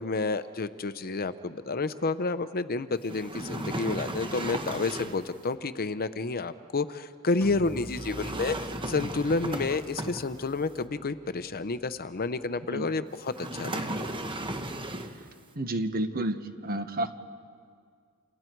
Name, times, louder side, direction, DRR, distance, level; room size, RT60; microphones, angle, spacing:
voice 1, 0.0-14.1, left 3 dB, 45° left, 12 dB, 0.8 m, -30 dB
sound 1, 3.0-5.3 7.9-10.6 13.3-15.3, right 1 dB, 25° right, 1.3 m, -35 dB
sound 2, 7.4-13.0, equal, 10° left, 1.4 m, -48 dB
voice 2, 15.5-16.4 16.6-17.1, right 1 dB, 45° right, 8 dB, 1.3 m, -30 dB
28.5 x 28.0 x 4.6 m, 2.2 s
head